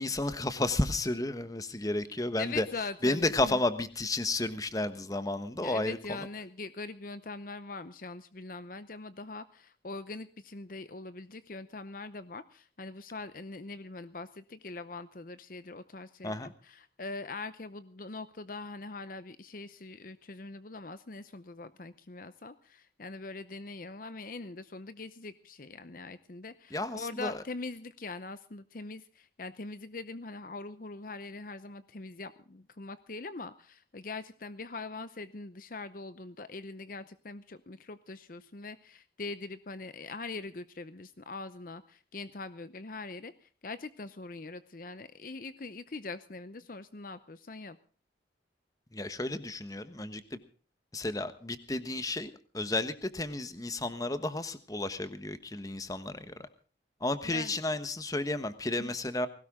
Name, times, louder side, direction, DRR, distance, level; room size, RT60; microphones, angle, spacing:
voice 1, 0.0-2.7 3.0-6.2 16.2-16.5 26.7-27.4 48.9-50.4 50.9-56.3 57.0-59.3, left 2 dB, 20° left, 11 dB, 1.2 m, -32 dB
voice 2, 2.4-3.6 5.6-16.4 16.6-47.8 57.2-57.6 58.8-58.9, left 3 dB, 45° left, 13 dB, 0.7 m, -42 dB
20.5 x 17.5 x 3.7 m, 0.40 s
head